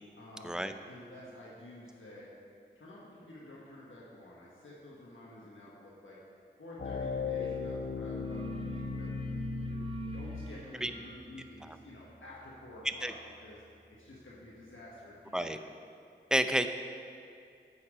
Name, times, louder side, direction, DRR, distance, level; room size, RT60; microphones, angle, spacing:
voice 1, 0.2-2.3 2.7-6.2 6.6-9.8 10.1-13.1 13.4-13.6 14.0-15.6, left 1 dB, 80° left, -6 dB, 1.4 m, -50 dB
sound 1, 6.8-10.7, left 5 dB, 50° left, 0.8 m, -37 dB
sound 2, 7.4-7.7 7.9-14.6, right 3 dB, 25° right, 0.8 m, -47 dB
voice 2, 16.3-16.7, right 1 dB, 5° right, 9 dB, 0.5 m, -29 dB
8.5 x 7.1 x 5.0 m, 2.4 s
cardioid pair, 40°, 20 cm